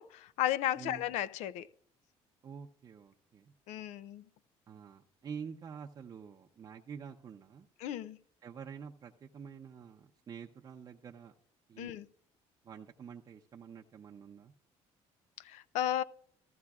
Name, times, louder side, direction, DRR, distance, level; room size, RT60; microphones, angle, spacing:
voice 1, 0.0-1.7 3.7-4.2 7.8-8.2 11.8-12.1 15.4-16.0, left 12 dB, 80° left, 0.5 m, -34 dB
voice 2, 0.8-1.1 2.4-3.5 4.7-7.7 8.4-11.3 11.7-11.9 12.6-14.5, right 7 dB, 35° right, 0.6 m, -48 dB
14.5 x 14.5 x 2.4 m
cardioid pair, 140°, 12 cm